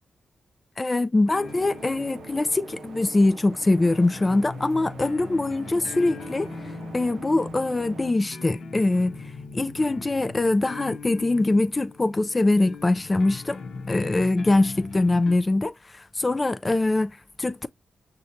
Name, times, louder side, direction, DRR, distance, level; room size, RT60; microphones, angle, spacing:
voice 1, 0.8-6.5 6.9-9.1 9.5-13.6 13.9-17.7, left 2 dB, 30° left, 0.4 m, -23 dB
sound 1, 1.2-15.3, left 4 dB, 70° left, 0.8 m, -40 dB
sound 2, 1.4-8.1, right 5 dB, 75° right, 0.5 m, -44 dB
6.3 x 2.3 x 2.6 m
cardioid pair, 50°, 0 cm